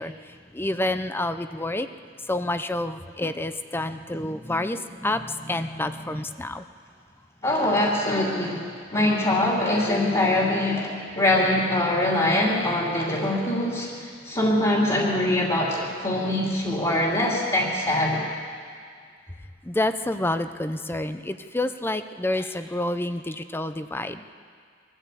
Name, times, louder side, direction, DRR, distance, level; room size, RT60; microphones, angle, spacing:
voice 1, 0.0-1.9 2.3-6.7 19.6-24.3, left 1 dB, 10° left, 10 dB, 0.7 m, -28 dB
voice 2, 7.4-18.2 22.4-22.5, left 1 dB, 25° left, -4 dB, 2.9 m, -23 dB
23.0 x 13.5 x 8.4 m, 2.1 s
head